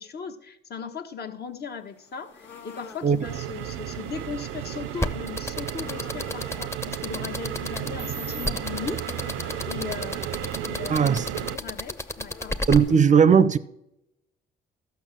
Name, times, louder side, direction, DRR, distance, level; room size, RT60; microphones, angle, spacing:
voice 1, 0.0-9.0 9.6-12.6, left 6 dB, 55° left, 1.1 m, -38 dB
sound 1, 1.8-13.0, left 6 dB, 75° left, 1.5 m, -47 dB
sound 2, 3.2-11.6, right 13 dB, 85° right, 0.5 m, -34 dB
sound 3, 5.0-12.8, left 1 dB, 15° left, 0.7 m, -30 dB
voice 2, 10.9-11.3 12.7-13.6, right 7 dB, 40° right, 0.5 m, -17 dB
12.5 x 5.8 x 7.5 m
cardioid pair, 90°, 20 cm